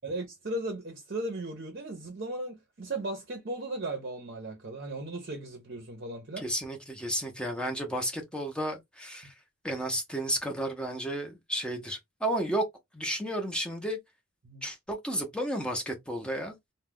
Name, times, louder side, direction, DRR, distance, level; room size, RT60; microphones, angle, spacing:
voice 1, 0.0-6.5 14.4-14.6, right 2 dB, 50° right, 0.6 m, -36 dB
voice 2, 6.4-9.3 9.6-12.6 12.9-14.0 14.6-16.5, right 1 dB, 5° left, 0.6 m, -32 dB
2.3 x 2.1 x 3.4 m
head